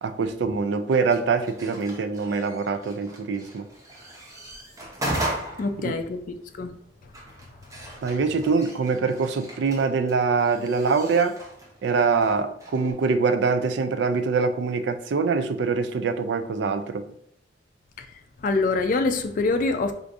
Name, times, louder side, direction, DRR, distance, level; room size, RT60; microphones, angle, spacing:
voice 1, 0.0-3.7 5.8-5.9 8.0-11.4 11.8-17.1, right 4 dB, 75° right, 0.4 m, -24 dB
sound 1, 0.9-12.9, right 1 dB, 20° right, 0.7 m, -38 dB
voice 2, 5.6-6.2 6.6-6.7 18.0-19.9, left 3 dB, 45° left, 0.3 m, -25 dB
4.6 x 2.5 x 2.5 m
head